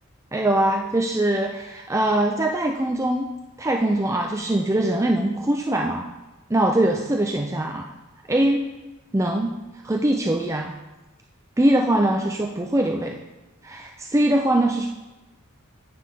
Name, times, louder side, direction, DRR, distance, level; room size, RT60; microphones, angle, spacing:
voice 1, 0.3-3.3 3.6-6.1 6.5-7.9 8.3-8.6 9.1-9.6 9.8-10.7 11.6-13.2 13.6-14.9, right 1 dB, 15° right, 1 dB, 0.5 m, -22 dB
9.6 x 8.5 x 3.6 m, 1.1 s
head